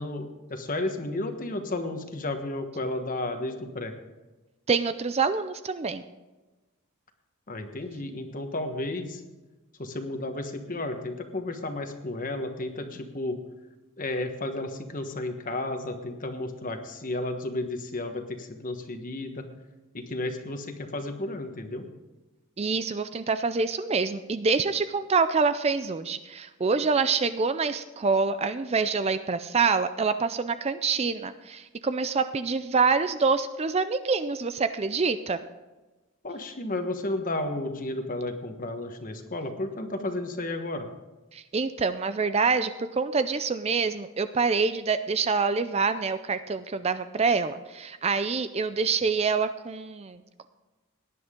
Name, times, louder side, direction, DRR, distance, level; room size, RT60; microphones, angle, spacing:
voice 1, 0.0-3.9 7.5-9.2 9.8-13.4 14.0-19.4 19.9-21.9 36.2-40.9, left 2 dB, 35° left, 6 dB, 1.3 m, -33 dB
voice 2, 4.7-6.0 22.6-35.4 41.3-50.5, right 4 dB, 30° right, 11 dB, 0.4 m, -26 dB
18.0 x 10.5 x 3.7 m, 1.1 s
head